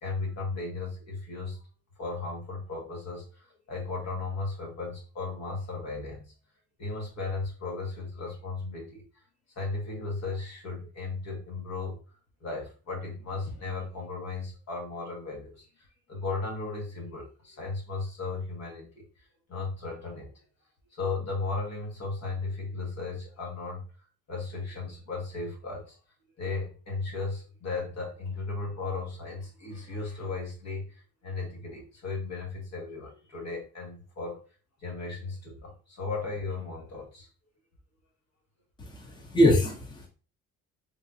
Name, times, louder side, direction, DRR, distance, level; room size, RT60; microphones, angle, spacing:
voice 1, 0.0-1.6 2.0-6.3 6.8-9.2 9.5-20.3 20.9-23.9 24.3-26.0 26.4-34.4 34.8-37.3, left 3 dB, 60° left, -1 dB, 1.5 m, -36 dB
voice 2, 38.8-40.1, left 1 dB, 15° left, 1 dB, 0.8 m, -24 dB
3.7 x 2.5 x 2.7 m, 0.36 s
cardioid pair, 90°, 30 cm